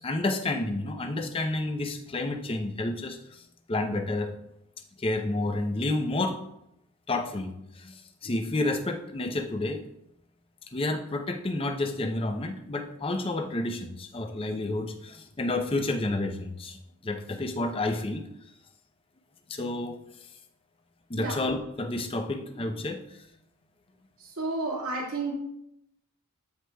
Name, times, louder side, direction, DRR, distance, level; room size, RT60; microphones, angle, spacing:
voice 1, 0.0-3.4 3.7-4.3 5.0-6.4 7.1-9.9 10.7-18.2 19.5-20.0 21.1-23.2, left 2 dB, 25° left, 6 dB, 0.6 m, -30 dB
voice 2, 24.2-25.3, right 3 dB, 80° right, -4 dB, 2.0 m, -31 dB
14.0 x 4.8 x 2.3 m, 0.81 s
head